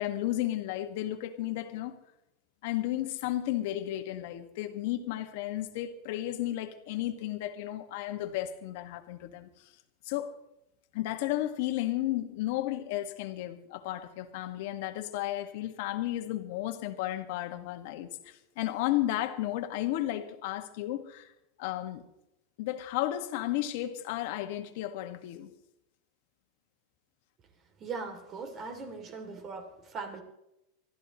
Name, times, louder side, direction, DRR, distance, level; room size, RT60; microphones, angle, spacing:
voice 1, 0.0-2.0 2.6-9.7 10.0-10.3 10.9-21.3 21.6-22.0 22.6-25.5, left 14 dB, 60° left, 1.8 m, -33 dB
voice 2, 27.8-30.2, right 4 dB, 30° right, 3.0 m, -40 dB
23.5 x 14.5 x 3.2 m
supercardioid pair, 150°, 0 cm